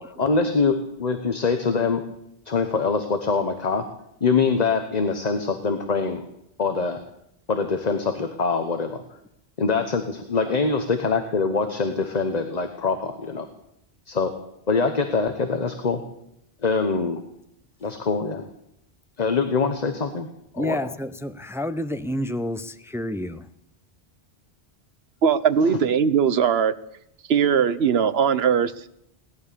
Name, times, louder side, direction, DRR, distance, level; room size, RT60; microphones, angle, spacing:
voice 1, 0.0-2.0 2.4-3.8 4.2-6.2 6.6-7.0 7.5-9.0 9.6-13.5 14.1-14.3 14.7-16.0 16.6-17.2 17.8-18.5 19.2-20.3 20.5-20.8, left 4 dB, 40° left, 7 dB, 1.1 m, -24 dB
voice 2, 20.6-23.5, left 1 dB, 5° right, 11 dB, 0.5 m, -29 dB
voice 3, 25.2-26.7 27.3-28.9, right 7 dB, 70° right, 14 dB, 1.0 m, -20 dB
18.0 x 11.5 x 6.9 m, 0.78 s
omnidirectional pair, 1.1 m